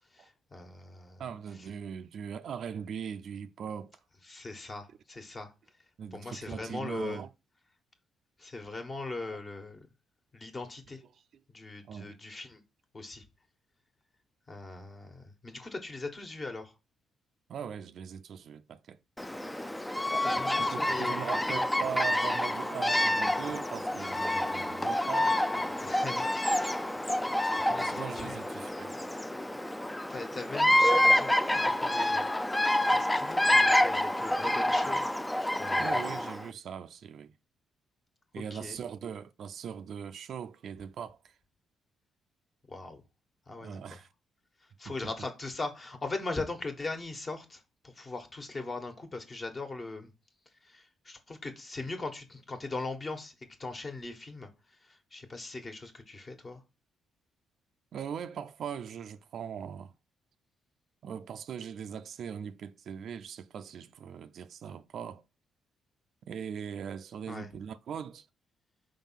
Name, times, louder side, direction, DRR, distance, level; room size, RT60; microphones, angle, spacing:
voice 1, 0.1-1.2 1.6-1.7 4.2-5.5 6.1-7.2 8.4-9.9 10.3-11.0 11.5-12.6 12.9-13.2 14.5-16.7 20.2-21.5 25.8-26.3 27.7-28.4 30.1-32.3 32.9-35.0 35.4-36.0 38.5-38.8 42.7-43.0 43.5-44.0 44.8-50.1 50.6-53.3 53.6-54.5 54.8-56.6 67.3-67.5, left 3 dB, 30° left, 1.5 m, -40 dB
voice 2, 1.2-3.9 6.0-7.3 9.2-9.3 11.8-12.2 17.5-19.0 20.6-25.4 27.8-28.9 35.8-37.3 38.3-41.2 43.6-44.1 44.9-45.0 57.9-59.9 61.0-65.2 66.3-68.3, right 8 dB, 65° right, 0.4 m, -40 dB
Bird vocalization bird call bird song, 19.2-36.4, left 1 dB, 10° left, 0.4 m, -28 dB
5.2 x 3.6 x 5.7 m
cardioid pair, 90°, 0 cm